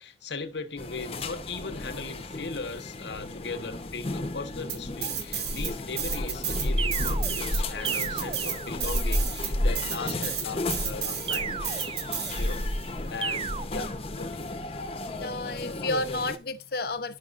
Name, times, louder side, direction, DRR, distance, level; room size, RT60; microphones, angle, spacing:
voice 1, 0.0-11.5 12.4-12.6 13.1-14.7, left 4 dB, 80° left, 1.0 m, -38 dB
sound 1, 0.8-16.4, left 1 dB, 35° left, 0.8 m, -32 dB
sound 2, 4.7-5.7 6.0-12.8, right 8 dB, 70° right, 1.2 m, -32 dB
sound 3, 6.8-9.2 11.3-12.6 13.2-13.6, right 7 dB, 30° right, 0.3 m, -35 dB
voice 2, 15.2-17.2, left 2 dB, 60° left, 0.7 m, -31 dB
11.0 x 6.0 x 2.5 m
head